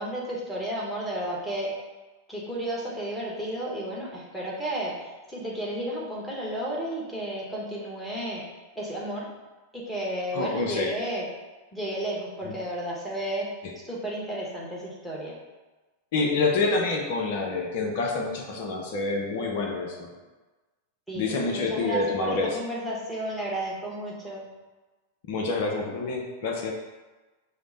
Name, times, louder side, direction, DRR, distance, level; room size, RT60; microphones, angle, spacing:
voice 1, 0.0-1.7 2.3-8.4 8.8-9.3 9.7-11.3 11.7-13.5 13.9-15.4 21.1-24.4, right 1 dB, ahead, -5 dB, 1.2 m, -32 dB
voice 2, 10.3-10.9 12.5-12.6 16.1-20.1 21.1-22.6 25.3-26.7, left 3 dB, 50° left, 0 dB, 0.6 m, -27 dB
5.0 x 2.1 x 3.9 m, 1.2 s
figure-of-eight pair, 90°, 0 cm